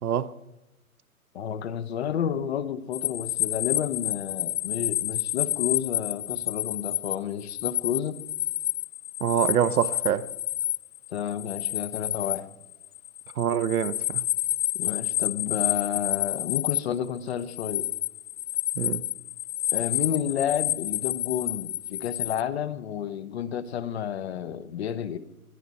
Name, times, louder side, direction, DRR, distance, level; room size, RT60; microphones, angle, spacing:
voice 1, 0.0-0.3 9.2-10.3 13.4-14.2 18.8-19.0, right 9 dB, 75° right, 1.0 m, -25 dB
voice 2, 1.3-8.2 11.1-12.5 14.8-17.9 19.7-25.2, left 9 dB, 45° left, 1.1 m, -31 dB
sound 1, 2.9-16.8 17.2-22.4, left 13 dB, 75° left, 0.5 m, -29 dB
20.5 x 12.5 x 4.2 m
hypercardioid pair, 150°, 44 cm